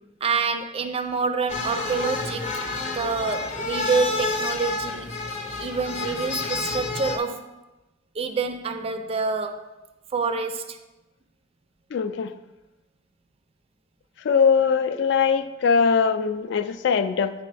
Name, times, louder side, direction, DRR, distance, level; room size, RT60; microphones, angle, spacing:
voice 1, 0.2-2.5 3.0-5.1 5.6-7.5 8.2-9.8 10.1-10.8, right 4 dB, 30° right, 8 dB, 0.3 m, -27 dB
sound 1, 1.5-7.2, left 3 dB, 35° left, 0.7 m, -29 dB
voice 2, 11.9-12.3 14.2-17.3, left 6 dB, 65° left, 11 dB, 0.4 m, -21 dB
9.6 x 3.4 x 3.3 m, 1.0 s
head